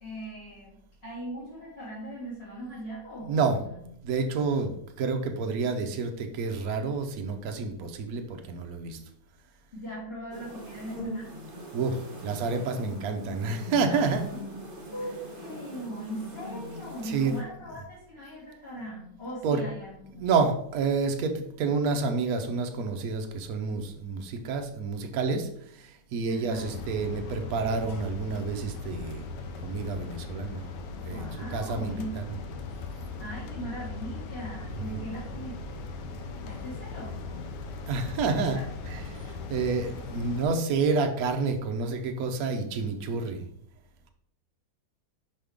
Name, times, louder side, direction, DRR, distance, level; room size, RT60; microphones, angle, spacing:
voice 1, 0.0-3.8 9.7-11.3 13.9-14.0 14.4-14.5 14.9-20.3 26.3-26.7 31.1-32.1 33.2-35.8 36.4-37.5 38.5-38.7, equal, 35° left, -8 dB, 2.2 m, -39 dB
voice 2, 3.2-3.6 4.0-9.0 11.7-14.3 17.0-17.4 17.6-17.8 19.4-19.7 20.1-29.3 29.6-30.7 31.0-32.4 34.7-35.1 37.9-43.5, right 4 dB, 65° right, 5 dB, 1.2 m, -29 dB
sound 1, 10.3-17.4, left 1 dB, 35° right, 1.2 m, -41 dB
sound 2, 26.5-40.4, left 3 dB, 85° left, 1.3 m, -39 dB
5.5 x 5.4 x 3.4 m, 0.71 s
omnidirectional pair, 1.8 m